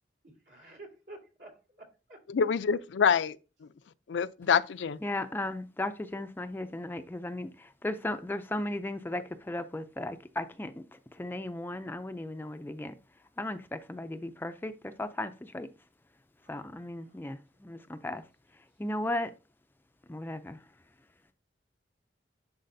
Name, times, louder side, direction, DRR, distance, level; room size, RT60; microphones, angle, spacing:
voice 1, 0.2-2.2 16.4-17.3, right 2 dB, 65° right, 2.4 m, -52 dB
voice 2, 2.3-3.4 4.1-5.0, left 6 dB, 80° left, 0.4 m, -26 dB
voice 3, 5.0-13.0 13.4-15.7 16.5-18.3 18.8-19.3 20.1-20.6, left 1 dB, 10° left, 0.3 m, -36 dB
10.5 x 4.2 x 2.6 m
head